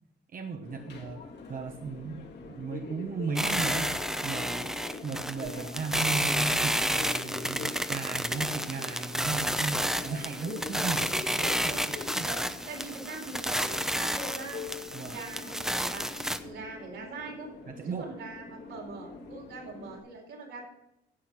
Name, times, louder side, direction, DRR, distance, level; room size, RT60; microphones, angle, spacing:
voice 1, 0.3-1.2 1.5-4.0 4.2-4.7 5.0-11.8 12.1-12.3 14.9-15.2 17.7-18.2, right 5 dB, 45° right, 5 dB, 1.0 m, -36 dB
Subway metro underground, 0.6-20.0, left 4 dB, 60° left, 2.4 m, -44 dB
sound 1, 3.4-16.4, equal, ahead, 0.8 m, -31 dB
voice 2, 12.2-14.6 15.0-16.1 16.4-17.5 17.8-20.7, right 4 dB, 80° right, -1 dB, 4.2 m, -43 dB
11.0 x 7.8 x 5.9 m, 0.89 s
cardioid pair, 90°, 20 cm